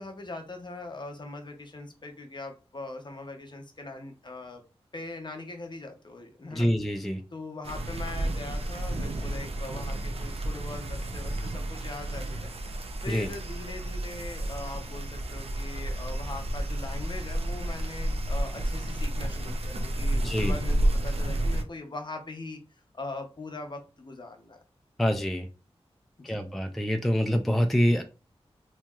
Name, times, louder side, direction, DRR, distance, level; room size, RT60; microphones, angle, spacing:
voice 1, 0.0-4.6 4.9-6.7 7.3-12.5 13.0-22.6 22.9-24.6 26.2-26.4, left 2 dB, 45° left, 4 dB, 0.6 m, -41 dB
voice 2, 6.5-7.2 13.1-13.3 20.2-20.5 25.0-25.5 26.2-28.0, equal, ahead, 6 dB, 0.3 m, -26 dB
sound 1, 7.6-21.6, right 1 dB, 65° right, 0.4 m, -31 dB
2.8 x 2.8 x 2.3 m, 0.33 s
wide cardioid pair, 60°, 11 cm